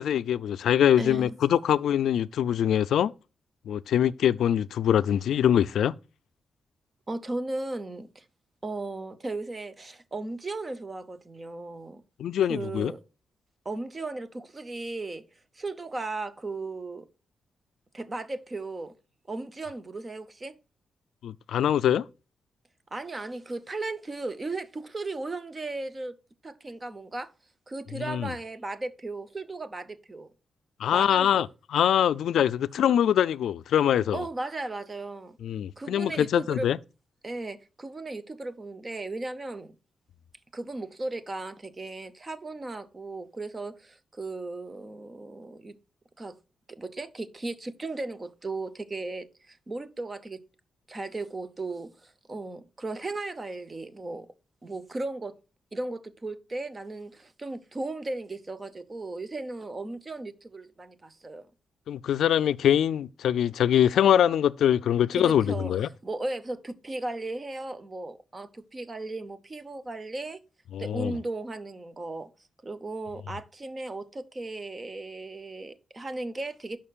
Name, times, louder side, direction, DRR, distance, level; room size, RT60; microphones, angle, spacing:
voice 1, 0.0-3.1 3.7-5.9 12.2-12.9 21.2-22.1 27.9-28.3 30.8-34.2 35.4-36.8 61.9-65.9 70.7-71.2, left 10 dB, 85° left, 0.3 m, -23 dB
voice 2, 1.0-1.3 7.1-8.2 8.6-12.0 12.5-13.0 13.6-15.2 15.5-17.1 17.9-18.9 19.3-20.5 22.9-26.2 26.4-27.3 27.7-30.3 30.9-31.4 34.1-35.4 35.8-36.7 37.2-39.8 40.5-45.8 46.2-46.3 46.8-50.4 50.9-54.3 54.6-55.3 55.7-61.5 65.2-65.7 66.0-70.4 70.8-72.3 72.6-76.8, right 2 dB, 25° right, 0.7 m, -36 dB
11.0 x 5.7 x 2.4 m
wide cardioid pair, 155°, 0 cm